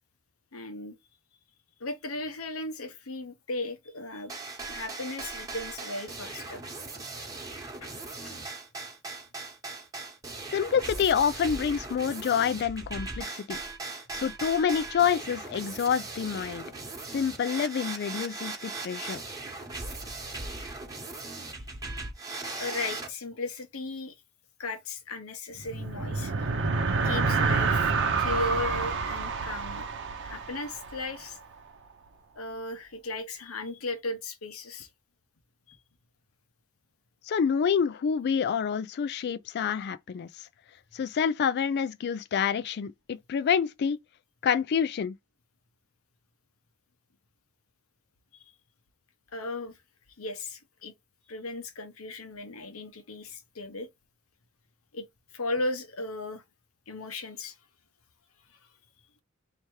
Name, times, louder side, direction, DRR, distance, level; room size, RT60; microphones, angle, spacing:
voice 1, 0.5-0.9 1.8-6.6 7.8-8.0 8.2-8.4 22.6-24.1 24.6-26.5 26.9-27.9 28.2-29.9 30.2-31.4 32.3-34.9 35.7-35.8 48.3-48.4 49.3-49.8 50.2-50.9 51.3-53.9 54.9-55.1 55.3-56.4 56.9-57.6, left 2 dB, 85° left, 1.0 m, -36 dB
sound 1, 4.3-23.1, right 3 dB, 15° right, 1.1 m, -39 dB
voice 2, 10.5-13.6 14.1-16.6 17.1-19.2 37.2-40.5 40.9-44.0 44.4-45.1, left 7 dB, 50° left, 0.3 m, -27 dB
sound 2, 25.5-31.3, right 4 dB, 60° right, 0.8 m, -28 dB
3.4 x 2.9 x 4.6 m
head